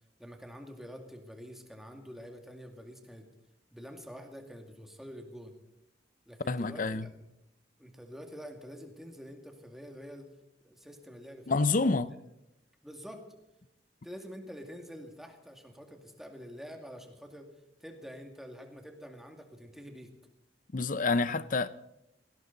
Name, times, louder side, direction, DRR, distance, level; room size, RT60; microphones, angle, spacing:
voice 1, 0.2-3.3 3.7-5.5 6.3-7.1 7.8-10.3 10.6-12.0 12.8-13.2 14.0-17.5 17.8-20.1, equal, ahead, 2.2 m, -47 dB
voice 2, 6.5-7.1 11.5-12.1 20.7-21.7, left 3 dB, 50° left, 0.7 m, -28 dB
18.0 x 16.5 x 4.0 m
head